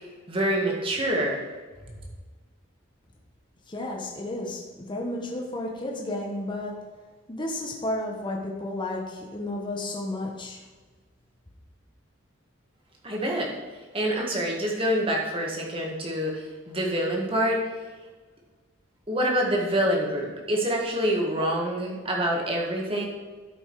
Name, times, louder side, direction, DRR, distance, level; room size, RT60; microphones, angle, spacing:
voice 1, 0.3-1.4 13.0-13.6 13.9-17.7 19.1-23.1, equal, 25° right, -1 dB, 1.7 m, -26 dB
voice 2, 3.7-6.7 7.3-10.6, left 1 dB, 25° left, -1 dB, 1.1 m, -32 dB
12.0 x 5.3 x 4.8 m, 1.4 s
head